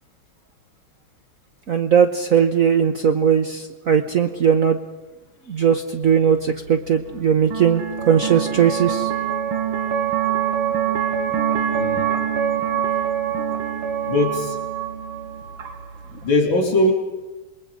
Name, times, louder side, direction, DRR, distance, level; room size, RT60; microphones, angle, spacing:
voice 1, 1.7-4.8 5.5-9.1, right 7 dB, 55° right, 6 dB, 1.0 m, -18 dB
sound 1, 6.0-16.4, right 8 dB, 85° right, 2.5 m, -25 dB
voice 2, 11.7-12.1 14.0-14.6 16.2-16.9, left 1 dB, 65° left, 2 dB, 4.3 m, -20 dB
27.5 x 21.0 x 5.1 m, 1.1 s
omnidirectional pair, 2.3 m